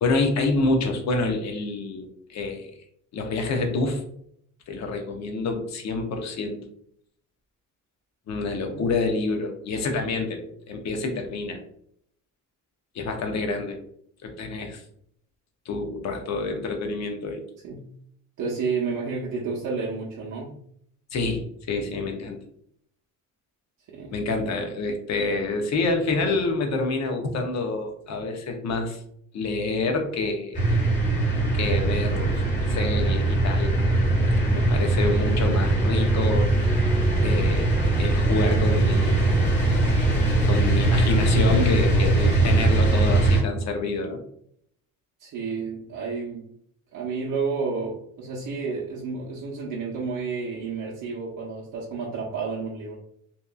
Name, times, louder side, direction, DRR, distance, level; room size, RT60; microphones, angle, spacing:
voice 1, 0.0-2.7 3.1-4.0 4.7-6.6 8.3-11.6 12.9-13.8 14.2-14.8 15.7-17.4 21.1-22.4 24.1-29.0 29.3-30.6 31.5-32.4 32.7-33.7 34.4-36.5 37.2-37.7 38.0-39.3 40.5-44.2, left 3 dB, 50° left, 4 dB, 0.7 m, -27 dB
voice 2, 18.4-20.6 23.9-24.3 45.2-46.5 46.9-53.0, right 4 dB, 65° right, -5 dB, 0.8 m, -31 dB
sound 1, 30.5-43.4, right 2 dB, 20° left, 1.5 m, -21 dB
2.8 x 2.4 x 2.2 m, 0.67 s
cardioid pair, 110°, 34 cm